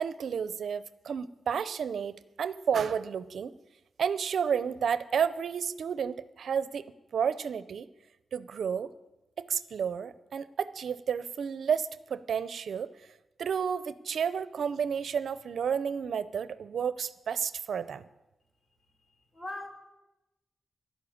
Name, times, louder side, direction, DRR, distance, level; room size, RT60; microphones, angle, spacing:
voice 1, 0.0-3.5 4.0-6.9 7.1-7.9 8.3-8.9 9.4-12.9 13.4-18.0, right 7 dB, 80° right, 15 dB, 0.6 m, -31 dB
voice 2, 19.0-19.7, left 2 dB, 30° left, 2 dB, 3.7 m, -41 dB
11.5 x 11.5 x 8.6 m, 1.0 s
cardioid pair, 65°, 0 cm